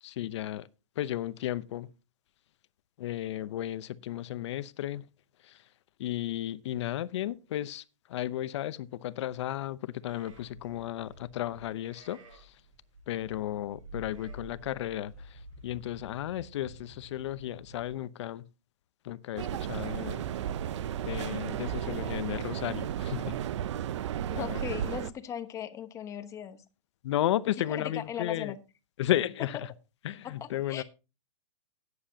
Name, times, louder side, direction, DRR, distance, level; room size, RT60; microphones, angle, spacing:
voice 1, 0.0-0.7 1.0-1.9 3.0-5.1 5.4-5.6 6.0-7.8 8.1-12.6 13.1-18.5 19.0-20.2 21.0-23.4 24.3-24.6 27.0-28.5 29.0-29.7 30.0-30.8, left 13 dB, 60° left, 0.8 m, -34 dB
Livestock farm animals working animals, 10.0-17.9, equal, 80° right, 7.5 m, -50 dB
sound 1, 19.4-25.1, right 10 dB, 65° right, 0.6 m, -34 dB
voice 2, 24.4-26.6 27.7-28.6 30.2-30.8, left 9 dB, 20° left, 1.0 m, -38 dB
14.0 x 9.7 x 2.8 m
hypercardioid pair, 150°, 17 cm